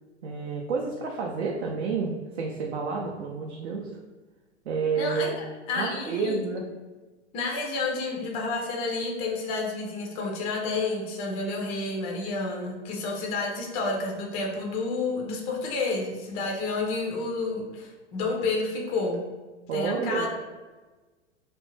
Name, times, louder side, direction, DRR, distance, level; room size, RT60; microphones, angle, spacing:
voice 1, 0.2-3.9 4.7-5.4 5.8-6.6 19.7-20.3, right 5 dB, 70° right, -1 dB, 0.5 m, -30 dB
voice 2, 4.9-6.4 7.3-19.2 19.7-20.3, left 3 dB, 20° left, 0 dB, 0.3 m, -30 dB
2.4 x 2.1 x 3.1 m, 1.3 s
hypercardioid pair, 100°, 35 cm